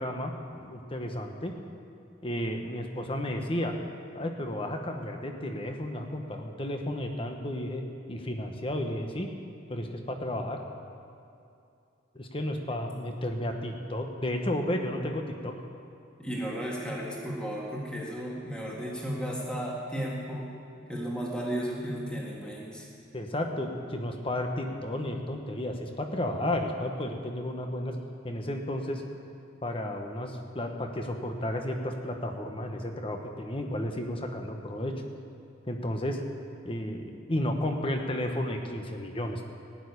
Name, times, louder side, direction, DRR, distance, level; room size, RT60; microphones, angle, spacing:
voice 1, 0.0-1.5 2.2-3.7 4.1-7.8 8.1-9.3 9.7-10.6 12.1-15.5 23.1-28.0 28.2-29.0 29.6-34.9 35.7-36.2 36.6-39.4, left 1 dB, 25° left, 4 dB, 1.2 m, -32 dB
voice 2, 16.2-20.5 20.9-22.9, equal, 5° left, -4 dB, 1.9 m, -34 dB
15.5 x 6.9 x 9.8 m, 2.5 s
head